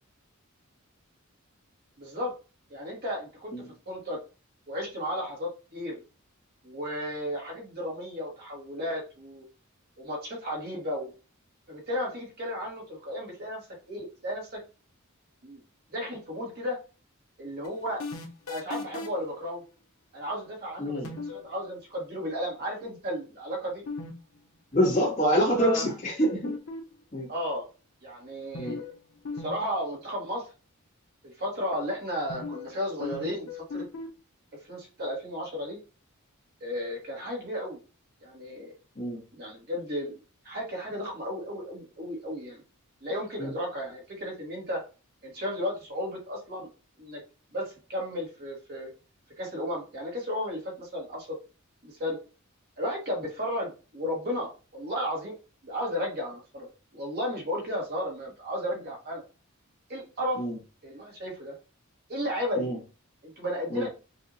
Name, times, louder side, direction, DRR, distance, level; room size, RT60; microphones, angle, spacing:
voice 1, 2.0-2.3 2.7-3.5 3.8-4.2 4.7-6.0 6.6-9.4 10.0-11.1 11.7-14.5 15.4-15.6 15.9-16.8 17.4-18.0 18.5-19.6 20.1-23.8 25.5-25.9 27.3-27.7 28.0-28.9 29.4-30.4 31.2-33.9 34.7-35.8 36.6-37.8 38.2-38.7 39.3-40.1 40.4-42.6 43.0-44.8 45.2-46.7 47.0-47.2 47.5-48.9 49.4-51.3 51.8-52.2 52.8-55.3 55.6-59.2 59.9-60.4 60.8-61.5 62.1-62.7 63.2-63.9, equal, 50° right, -1 dB, 1.7 m, -34 dB
sound 1, 17.6-19.3 21.0-21.5 23.9-24.1 24.4-24.5 26.2-27.0 28.5-29.0 29.3-29.5 29.8-29.9 32.3-32.7 33.0-34.1, left 3 dB, 85° left, 0.9 m, -36 dB
voice 2, 24.7-26.6 27.1-27.3 28.6-28.8 38.9-39.2 43.4-43.5 60.4-60.6 62.6-62.8 63.7-63.9, equal, 35° left, -7 dB, 1.6 m, -26 dB
5.6 x 2.7 x 2.8 m, 0.34 s
head